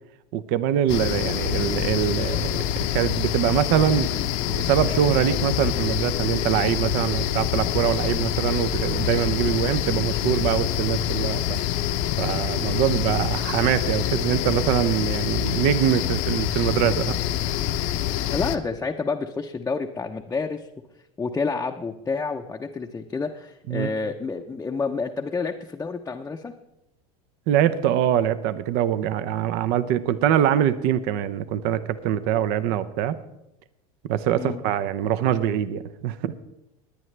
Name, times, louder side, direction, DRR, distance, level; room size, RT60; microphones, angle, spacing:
voice 1, 0.3-4.1 4.5-11.6 12.2-17.2 23.7-23.9 27.5-33.2 34.1-36.3, right 10 dB, 60° right, 14 dB, 0.7 m, -23 dB
sound 1, 0.9-18.6, left 11 dB, 60° left, 0.8 m, -26 dB
voice 2, 18.3-20.7 21.2-26.5 34.3-34.6, left 4 dB, 15° left, 1 dB, 0.7 m, -29 dB
20.0 x 9.5 x 3.3 m, 0.86 s
supercardioid pair, 110°, 18 cm